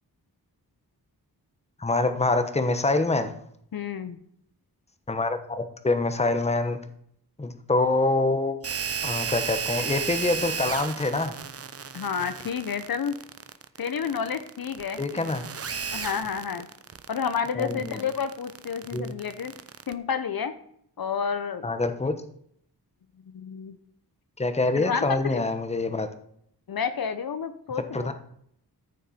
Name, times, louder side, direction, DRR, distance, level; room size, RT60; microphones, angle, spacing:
voice 1, 1.8-3.3 5.1-6.8 7.4-8.6 9.0-11.3 15.0-15.4 17.5-18.0 18.9-19.1 21.6-22.1 24.4-26.1 27.9-28.1, left 2 dB, 15° left, 9 dB, 1.0 m, -25 dB
voice 2, 3.7-4.2 11.9-13.2 13.8-15.3 15.9-16.7 17.1-19.5 19.9-20.5 21.0-21.7 23.3-23.8 24.8-25.4 26.7-28.1, left 6 dB, 65° left, 10 dB, 0.9 m, -30 dB
sound 1, 8.6-19.9, right 6 dB, 35° right, 0.6 m, -34 dB
14.0 x 6.6 x 4.3 m, 0.68 s
wide cardioid pair, 100°, 39 cm